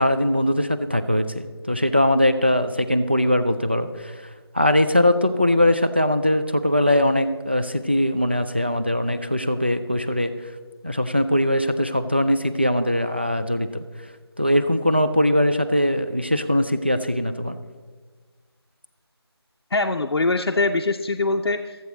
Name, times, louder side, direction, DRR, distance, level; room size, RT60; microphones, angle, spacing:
voice 1, 0.0-4.2 4.5-10.3 10.8-13.8 14.4-17.6, left 1 dB, 25° right, 9 dB, 0.3 m, -21 dB
voice 2, 19.7-21.8, left 3 dB, 70° left, 3 dB, 0.6 m, -23 dB
13.5 x 8.0 x 4.0 m, 1.5 s
figure-of-eight pair, 165°, 14 cm